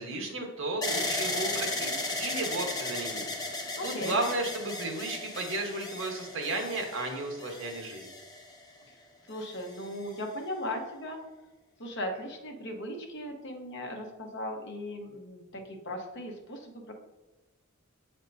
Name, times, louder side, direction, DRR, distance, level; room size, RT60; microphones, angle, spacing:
voice 1, 0.0-1.9 2.2-3.2 3.8-8.1, right 2 dB, 65° right, 2 dB, 1.1 m, -33 dB
sound 1, 0.8-8.8 9.5-10.2, left 2 dB, 20° left, 0.7 m, -35 dB
voice 2, 3.8-4.2 9.3-11.2 11.8-16.8, left 1 dB, 60° left, 2 dB, 1.0 m, -37 dB
8.1 x 4.4 x 2.6 m, 1.2 s
head